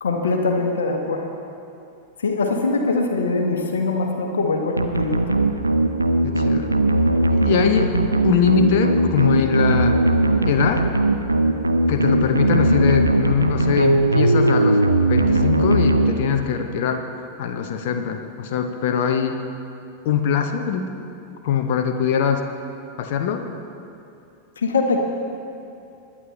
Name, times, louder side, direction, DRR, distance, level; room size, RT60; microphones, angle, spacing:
voice 1, 0.0-1.2 2.2-5.2 24.6-25.0, left 3 dB, 65° left, 3 dB, 1.4 m, -22 dB
sound 1, 4.8-16.6, right 2 dB, 85° right, 0.5 m, -19 dB
voice 2, 6.2-6.7 7.3-10.0 10.4-10.9 11.9-14.8 15.1-17.0 17.4-19.4 20.0-20.9 21.4-22.4 23.0-23.4, left 7 dB, 50° left, 6 dB, 0.8 m, -22 dB
20.5 x 9.9 x 3.2 m, 2.6 s
figure-of-eight pair, 90°, 0 cm